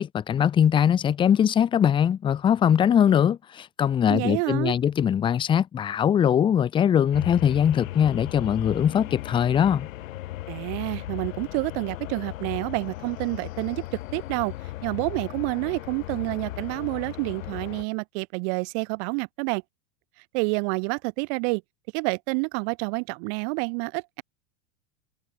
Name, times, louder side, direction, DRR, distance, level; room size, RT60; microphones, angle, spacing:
voice 1, 0.0-9.9, left 9 dB, 15° left, 0.4 m, -21 dB
voice 2, 4.1-4.7 10.5-14.5 14.8-19.6 20.3-21.6 21.9-24.2, right 37 dB, 55° right, 1.6 m, -28 dB
sound 1, 7.1-17.8, left 16 dB, 75° left, 1.8 m, -37 dB
hypercardioid pair, 115°, 40 cm